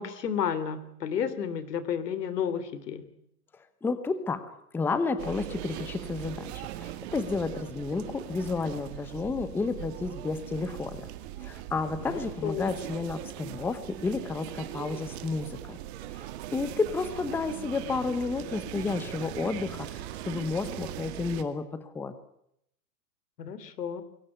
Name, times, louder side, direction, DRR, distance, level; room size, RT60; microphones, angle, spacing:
voice 1, 0.0-3.1 12.1-12.7 23.4-24.0, left 8 dB, 90° left, 14 dB, 3.3 m, -32 dB
voice 2, 3.5-11.1 11.4-15.8 16.1-22.1, left 4 dB, 5° left, 12 dB, 0.8 m, -31 dB
Marché Piégut, 5.2-21.4, right 12 dB, 40° right, 2.1 m, -40 dB
22.5 x 18.0 x 9.8 m, 0.75 s
hypercardioid pair, 155°, 47 cm